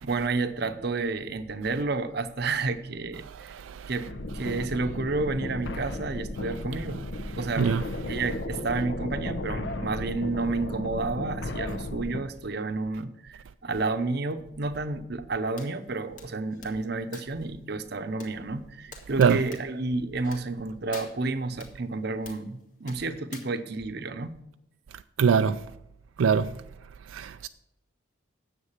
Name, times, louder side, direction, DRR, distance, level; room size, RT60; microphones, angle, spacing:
voice 1, 0.0-3.5 3.9-7.1 7.4-24.4, right 3 dB, 55° right, 0.7 m, -31 dB
sound 1, 4.1-12.2, left 2 dB, 60° left, 0.9 m, -35 dB
sound 2, 15.6-15.7 16.2-17.5 18.2-18.3 18.9-19.7 20.2-20.6 20.9-21.7 22.3-22.5 22.9-23.4, left 4 dB, 40° left, 1.9 m, -45 dB
voice 2, 25.2-25.6 26.2-26.5 27.2-27.5, right 6 dB, 85° right, 0.4 m, -21 dB
9.8 x 7.6 x 5.7 m
head